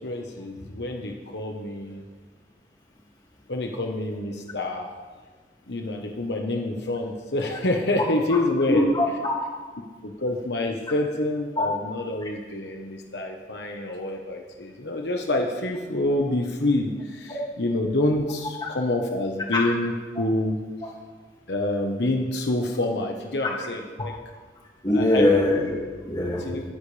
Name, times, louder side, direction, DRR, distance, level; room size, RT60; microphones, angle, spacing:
voice 1, 0.0-2.0 3.5-4.9 5.7-8.8 10.0-20.6 21.5-24.2 24.9-25.4 26.4-26.6, left 2 dB, 70° left, 2 dB, 1.2 m, -27 dB
voice 2, 8.9-9.4 11.6-11.7 17.3-17.4 18.6-18.7 19.5-19.6 24.8-26.4, left 2 dB, 20° left, -2 dB, 2.4 m, -22 dB
22.5 x 10.0 x 3.4 m, 1.4 s
head